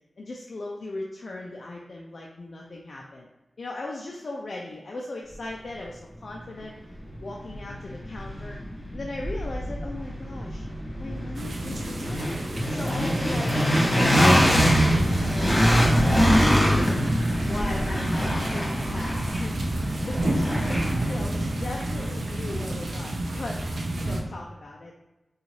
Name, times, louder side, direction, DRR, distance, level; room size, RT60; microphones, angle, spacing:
voice 1, 0.2-3.3 3.6-6.7 7.2-8.6 8.9-10.6 11.0-12.3 12.7-13.6 14.2-17.1 17.5-19.6 19.9-23.6 24.0-24.9, left 2 dB, 65° left, -1 dB, 0.4 m, -38 dB
sound 1, 6.6-6.7 7.1-23.1, equal, 30° left, 1.4 m, -24 dB
sound 2, 11.3-24.2, right 1 dB, 75° right, 0.5 m, -30 dB
3.8 x 2.4 x 3.0 m, 1.1 s
cardioid pair, 55°, 0 cm